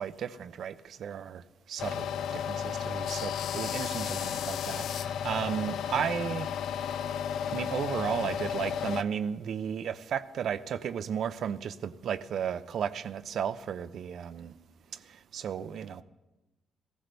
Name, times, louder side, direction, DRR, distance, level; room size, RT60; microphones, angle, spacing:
voice 1, 0.0-1.4 1.7-2.1 2.3-6.5 7.5-14.5 15.3-16.0, right 8 dB, 65° right, 0.6 m, -34 dB
sound 1, 1.8-9.0, left 8 dB, 75° left, 0.4 m, -33 dB
15.5 x 15.5 x 3.4 m
cardioid pair, 90°, 0 cm